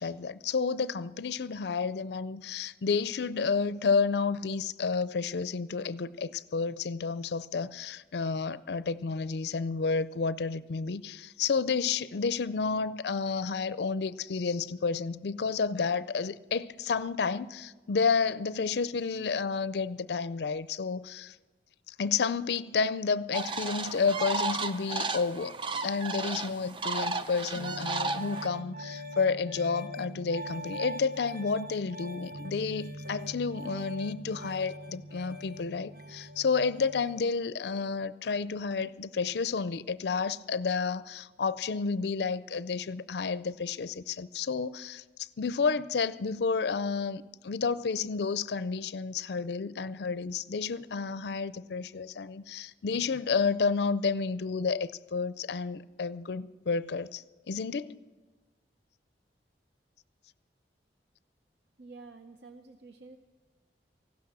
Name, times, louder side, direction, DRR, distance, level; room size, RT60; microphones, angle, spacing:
voice 1, 0.0-21.4 22.0-58.0, left 5 dB, 70° left, 0.4 m, -31 dB
sound 1, 23.3-28.5, right 3 dB, 30° right, 0.5 m, -33 dB
Piano, 27.6-37.3, equal, 50° right, 1.0 m, -42 dB
voice 2, 61.8-63.2, right 3 dB, 75° right, 0.6 m, -49 dB
16.0 x 12.0 x 6.1 m
head